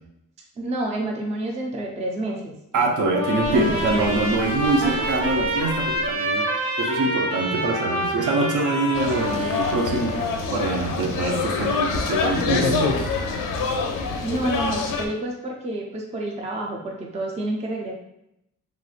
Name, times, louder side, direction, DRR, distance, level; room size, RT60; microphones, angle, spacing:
voice 1, 0.6-2.5 3.5-4.1 4.8-5.1 14.2-17.9, right 1 dB, 20° right, 0 dB, 0.4 m, -29 dB
voice 2, 2.7-13.1, right 2 dB, 65° right, 2 dB, 0.6 m, -24 dB
Trumpet, 3.0-10.2, equal, 50° right, 1.3 m, -27 dB
Sink (filling or washing), 3.4-6.1, equal, 90° right, 1.3 m, -36 dB
sound 1, 8.9-15.1, left 4 dB, 85° left, 0.5 m, -25 dB
3.0 x 2.9 x 2.4 m, 0.82 s
wide cardioid pair, 140°, 32 cm